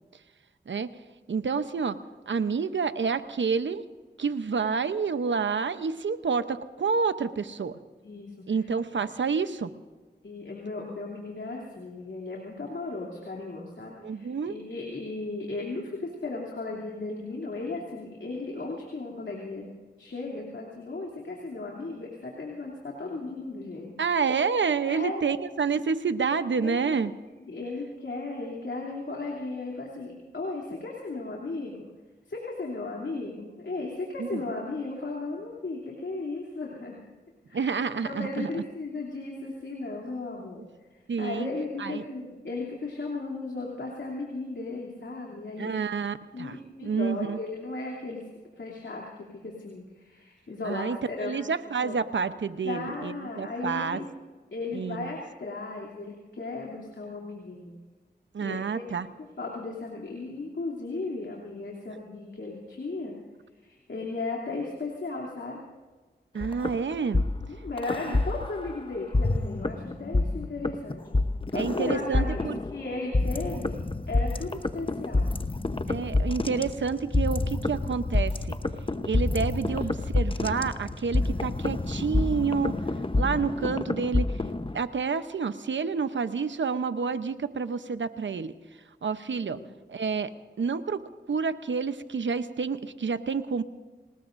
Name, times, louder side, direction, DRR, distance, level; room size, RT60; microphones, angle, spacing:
voice 1, 1.3-2.0 2.3-3.8 4.2-7.8 8.5-9.7 14.0-14.6 24.0-27.1 34.2-34.4 37.5-38.6 41.1-41.5 41.8-42.0 45.6-47.4 50.6-54.0 54.7-55.1 58.3-59.1 66.3-67.3 68.1-68.2 71.5-72.6 75.9-78.6 79.0-82.7 83.2-84.3 84.7-88.5 89.0-89.6 89.9-90.3 90.6-91.0 91.3-93.6, right 5 dB, 80° right, 11 dB, 0.8 m, -29 dB
voice 2, 8.0-8.7 10.2-19.7 20.0-23.9 24.9-25.2 26.5-27.0 27.5-31.9 32.3-37.0 37.5-37.8 38.0-45.7 46.3-48.2 48.6-51.4 51.8-52.0 52.6-54.1 54.5-57.7 58.4-63.2 63.6-65.6 67.4-71.0 71.5-72.3 72.7-73.7 74.1-75.3 79.7-79.8 89.5-89.7, left 3 dB, 70° left, -3 dB, 3.0 m, -36 dB
sound 1, 66.4-68.7 69.1-84.8, left 2 dB, 30° left, 0.9 m, -28 dB
26.5 x 19.5 x 2.6 m, 1.3 s
cardioid pair, 45°, 19 cm